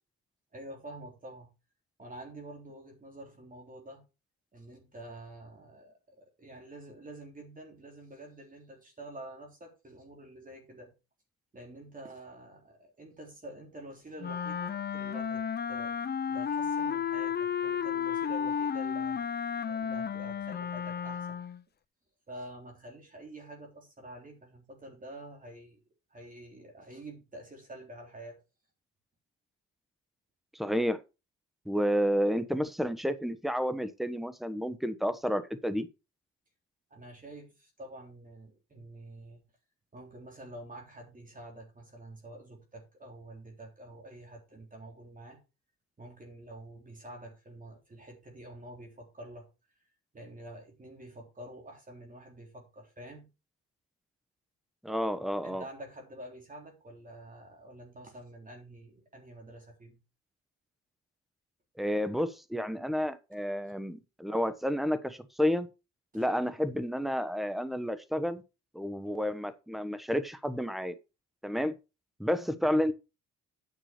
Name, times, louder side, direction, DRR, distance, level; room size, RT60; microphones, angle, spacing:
voice 1, 0.5-1.5 2.0-4.0 4.5-10.9 11.5-19.2 19.7-21.4 22.3-25.8 26.1-28.4 36.9-39.4 39.9-45.4 46.0-49.8 50.1-53.3 55.4-60.0 66.1-66.2 72.6-72.9, right 1 dB, 25° right, 3.5 m, -48 dB
Wind instrument woodwind instrument, 14.2-21.6, left 7 dB, 35° left, 0.7 m, -33 dB
voice 2, 30.5-31.0 31.6-35.9 54.8-55.6 61.8-65.7 66.1-68.4 68.7-70.9 71.4-71.7 72.2-72.9, equal, ahead, 1.2 m, -30 dB
9.4 x 6.1 x 5.0 m
cardioid pair, 90°, 30 cm